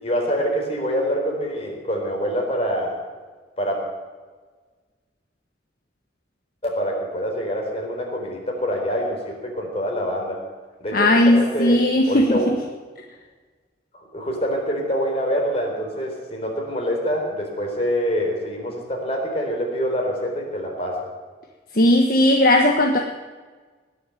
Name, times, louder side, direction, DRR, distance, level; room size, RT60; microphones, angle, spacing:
voice 1, 0.0-3.0 3.6-3.8 6.6-10.4 10.8-11.8 12.1-12.5 14.1-21.0, equal, 35° left, 0 dB, 4.1 m, -25 dB
voice 2, 10.9-12.6 21.7-23.0, left 1 dB, 55° left, 2 dB, 1.3 m, -17 dB
19.5 x 6.9 x 9.1 m, 1.4 s
head